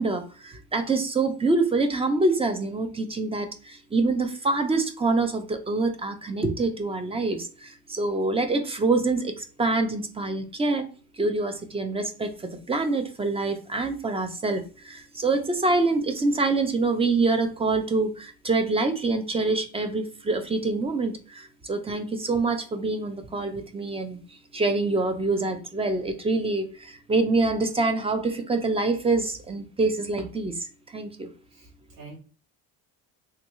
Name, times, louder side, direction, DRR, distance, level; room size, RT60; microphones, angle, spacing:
voice 1, 0.0-10.9 11.2-24.2 24.5-31.3, right 3 dB, 15° right, 7 dB, 0.4 m, -26 dB
voice 2, 31.5-32.2, right 3 dB, 50° right, -5 dB, 1.2 m, -46 dB
3.4 x 2.3 x 3.0 m, 0.38 s
cardioid pair, 120°, 39 cm